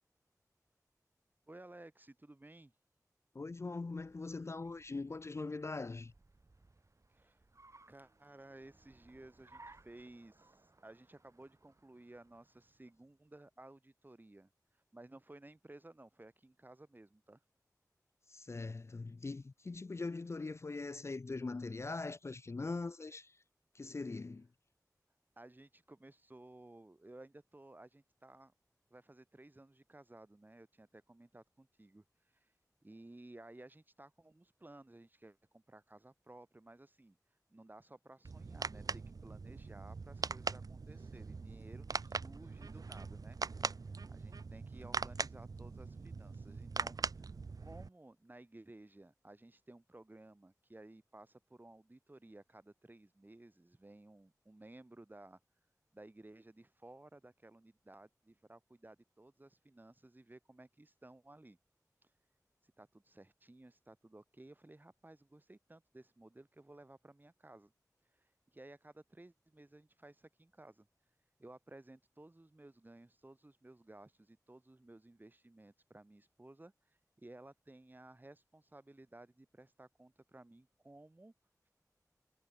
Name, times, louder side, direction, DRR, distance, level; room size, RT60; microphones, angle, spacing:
voice 1, 1.5-2.7 7.1-7.4 7.9-14.5 14.9-17.4 25.4-28.5 28.9-32.0 32.3-32.5 32.8-37.2 37.5-43.4 44.1-55.4 55.9-61.6 62.6-67.7 68.1-70.9 71.4-76.7 77.2-81.3, right 2 dB, 30° right, 1.7 m, -57 dB
voice 2, 3.3-6.1 18.3-23.4 23.7-24.5, left 3 dB, 45° left, 0.4 m, -41 dB
Car, 3.9-13.1, right 2 dB, 50° right, 5.6 m, -64 dB
sound 1, 38.2-47.9, right 4 dB, 70° right, 0.6 m, -42 dB
wide cardioid pair, 65°, 7 cm